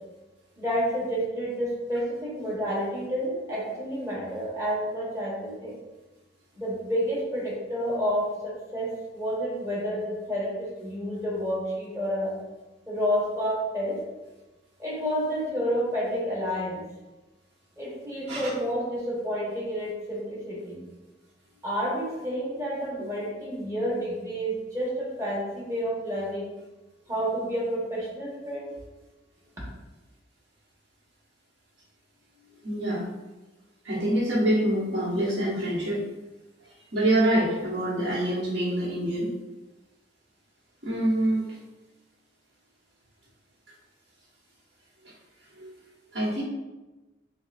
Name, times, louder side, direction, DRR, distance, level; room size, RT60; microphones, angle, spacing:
voice 1, 0.6-5.8 6.5-12.3 12.9-14.0 14.8-16.8 17.8-20.8 21.6-26.5 27.1-28.7, equal, 20° right, -5 dB, 1.2 m, -30 dB
voice 2, 32.6-33.0 33.8-36.0 36.9-39.3 40.8-41.6 45.6-45.8 46.1-46.4, right 1 dB, 80° right, -11 dB, 1.2 m, -26 dB
6.7 x 2.3 x 2.5 m, 1.1 s
head